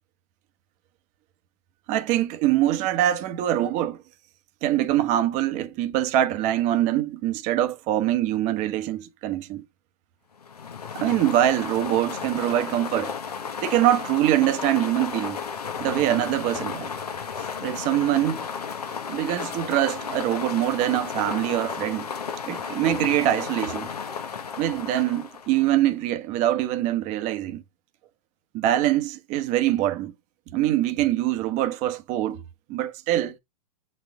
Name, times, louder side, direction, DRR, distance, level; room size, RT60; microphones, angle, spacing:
voice 1, 1.9-4.0 4.6-9.6 10.9-13.1 13.6-15.4 15.8-16.9 17.6-18.4 19.1-22.1 22.5-23.9 24.6-27.6 28.5-30.1 30.5-32.4 32.7-33.4, right 13 dB, 40° right, 1.0 m, -24 dB
sound 1, 10.4-25.9, left 6 dB, 80° left, 1.0 m, -33 dB
7.9 x 4.3 x 3.5 m
hypercardioid pair, 105°, 20 cm